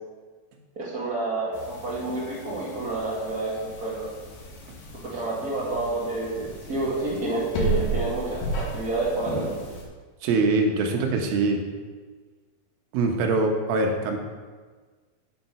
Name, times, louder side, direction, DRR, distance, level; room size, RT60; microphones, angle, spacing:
voice 1, 0.8-4.1 5.0-9.5, right 2 dB, 30° right, -6 dB, 1.9 m, -29 dB
sound 1, 1.5-9.8, right 2 dB, 75° left, 3.5 m, -34 dB
voice 2, 10.2-11.6 12.9-14.2, right 3 dB, 75° right, 3 dB, 2.8 m, -23 dB
8.1 x 7.2 x 5.8 m, 1.5 s
omnidirectional pair, 4.3 m